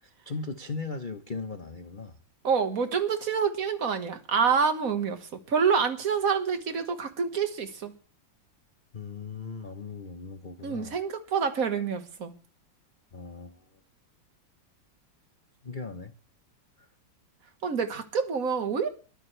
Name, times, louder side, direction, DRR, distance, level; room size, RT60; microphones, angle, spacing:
voice 1, 0.0-2.2 8.9-11.0 13.1-13.6 15.6-16.1 16.8-16.9, left 4 dB, 40° left, 8 dB, 0.8 m, -38 dB
voice 2, 2.4-7.9 10.6-12.3 17.6-18.9, right 6 dB, 45° right, 8 dB, 1.9 m, -27 dB
22.0 x 14.0 x 3.3 m, 0.37 s
omnidirectional pair, 2.1 m